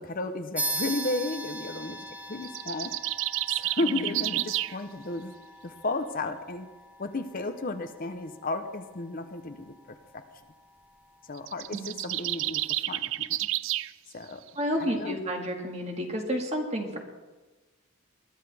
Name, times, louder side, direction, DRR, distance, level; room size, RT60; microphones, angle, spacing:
voice 1, 0.0-2.0 2.3-2.9 3.5-5.3 5.6-6.7 7.0-10.2 11.2-12.6 12.9-13.5 14.1-14.4 14.8-15.1, left 2 dB, 45° left, 8 dB, 0.8 m, -33 dB
sound 1, 0.6-10.5, right 1 dB, 5° right, 0.9 m, -40 dB
sound 2, 2.4-4.8 11.4-13.9, right 16 dB, 65° right, 0.3 m, -30 dB
voice 2, 3.8-4.3 11.7-11.9 14.6-17.0, equal, 30° right, 2 dB, 2.0 m, -31 dB
21.0 x 12.0 x 3.5 m, 1.2 s
head